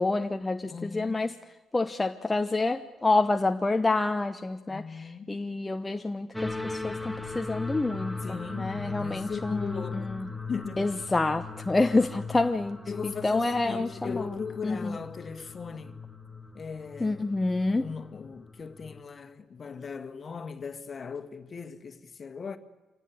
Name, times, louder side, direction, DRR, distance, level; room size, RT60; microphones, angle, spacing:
voice 1, 0.0-1.3 1.7-10.3 10.8-12.8 13.0-15.0 17.0-17.8, left 2 dB, 20° left, 1.0 m, -28 dB
voice 2, 0.7-1.2 4.7-5.3 8.2-10.1 10.5-10.9 12.9-16.0 16.5-17.3 17.8-22.6, left 5 dB, 45° left, 1.7 m, -38 dB
sound 1, 6.3-19.0, left 3 dB, 5° left, 2.4 m, -39 dB
25.0 x 18.0 x 9.7 m
hypercardioid pair, 45°, 0 cm